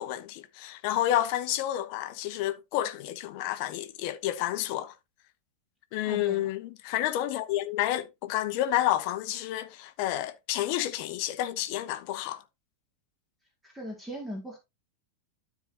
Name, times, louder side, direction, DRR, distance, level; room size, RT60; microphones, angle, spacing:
voice 1, 0.0-4.9 5.9-12.4, left 13 dB, 45° left, 1.0 m, -30 dB
voice 2, 6.0-6.5 13.6-14.6, equal, 10° right, 2.3 m, -39 dB
12.5 x 4.7 x 2.8 m
figure-of-eight pair, 90°, 0 cm